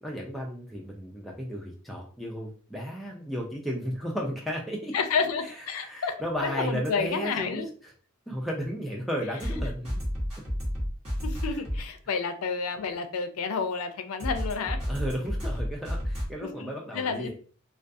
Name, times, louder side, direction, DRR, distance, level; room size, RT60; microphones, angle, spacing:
voice 1, 0.0-4.9 5.7-7.9 8.3-10.0 14.9-17.3, equal, ahead, -2 dB, 0.3 m, -34 dB
voice 2, 4.9-6.2 6.4-7.7 11.2-14.8 16.4-17.3, left 5 dB, 80° left, 8 dB, 0.4 m, -30 dB
sound 1, 6.8-6.9 9.4-11.8 14.2-16.3, equal, 30° right, 1.0 m, -30 dB
2.3 x 2.3 x 2.5 m, 0.41 s
head